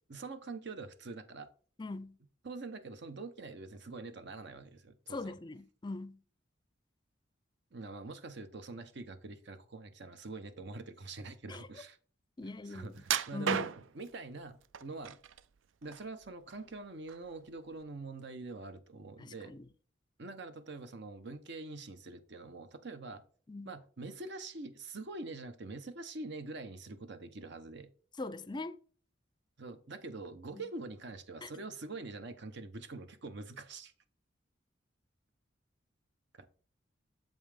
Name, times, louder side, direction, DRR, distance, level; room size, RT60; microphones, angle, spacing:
voice 1, 0.1-1.5 2.4-5.4 7.7-12.0 12.4-13.6 13.9-15.2 15.8-19.5 20.2-23.2 23.6-27.9 29.6-33.9 36.4-36.5, right 3 dB, 65° right, 0.8 m, -45 dB
voice 2, 1.8-2.2 5.1-6.2 11.5-11.6 12.4-12.9 13.3-13.7 19.2-19.7 23.5-23.7 28.2-28.8 31.4-31.5, left 2 dB, 25° left, 0.4 m, -41 dB
sound 1, 13.0-14.1 14.7-15.4 15.8-16.7 17.1-17.3 17.8-17.9, right 8 dB, 85° right, 0.4 m, -34 dB
7.5 x 5.4 x 3.4 m
head